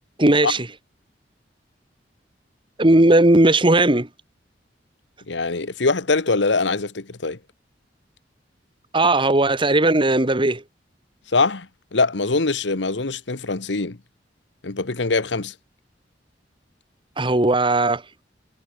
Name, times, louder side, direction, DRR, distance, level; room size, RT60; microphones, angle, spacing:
voice 1, 0.2-0.7 2.8-4.1 8.9-10.6 17.2-18.0, right 2 dB, 30° right, 1.9 m, -17 dB
voice 2, 5.3-7.4 11.3-14.0 14.6-15.5, left 3 dB, 80° left, 1.3 m, -23 dB
head